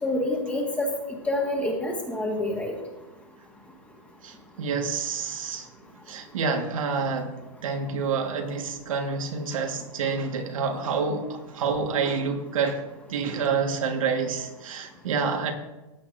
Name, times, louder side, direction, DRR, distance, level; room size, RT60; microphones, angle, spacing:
voice 1, 0.0-0.9 1.2-2.7, left 1 dB, 10° left, 1.6 m, -27 dB
voice 2, 4.2-5.7 6.1-7.4 7.6-15.5, right 5 dB, 80° right, 1.5 m, -28 dB
15.5 x 7.9 x 2.5 m
supercardioid pair, 160°, 17 cm